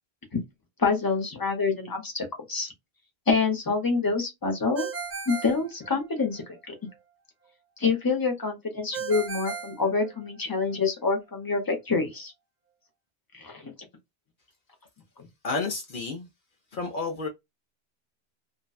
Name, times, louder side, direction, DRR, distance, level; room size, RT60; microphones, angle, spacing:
voice 1, 0.8-2.7 3.3-4.9 5.3-6.7 7.8-12.3 13.3-13.7, left 4 dB, 25° left, 0.7 m, -27 dB
Ringtone, 4.7-6.4 8.9-10.6, right 5 dB, 45° right, 0.9 m, -36 dB
voice 2, 15.4-16.3 16.7-17.3, left 3 dB, 60° left, 0.7 m, -30 dB
2.6 x 2.1 x 2.2 m
omnidirectional pair, 1.1 m